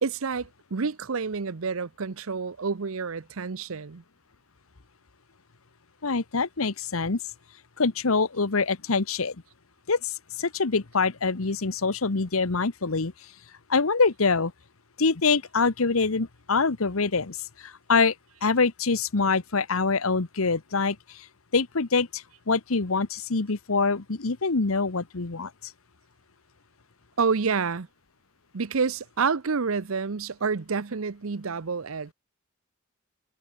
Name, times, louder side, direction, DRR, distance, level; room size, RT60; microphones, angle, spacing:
voice 1, 0.0-4.0 27.2-27.9 28.5-32.1, right 5 dB, 75° right, 0.7 m, -28 dB
voice 2, 6.0-7.2 7.8-9.3 9.9-13.1 13.7-14.5 15.0-18.1 18.4-21.3 21.5-25.7, left 4 dB, 80° left, 1.1 m, -25 dB
head